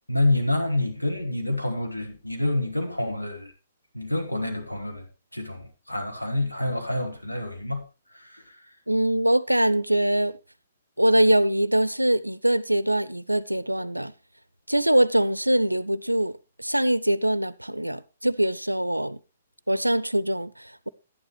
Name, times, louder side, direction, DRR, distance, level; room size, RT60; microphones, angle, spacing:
voice 1, 0.1-3.5 3.9-5.1 5.3-7.8 8.1-8.6, left 2 dB, 90° left, 2.0 m, -27 dB
voice 2, 8.9-10.4 11.0-14.1 14.7-16.3 16.6-19.2 19.7-20.9, right 1 dB, 90° right, 0.5 m, -23 dB
11.0 x 10.0 x 3.3 m
figure-of-eight pair, 120°, 0 cm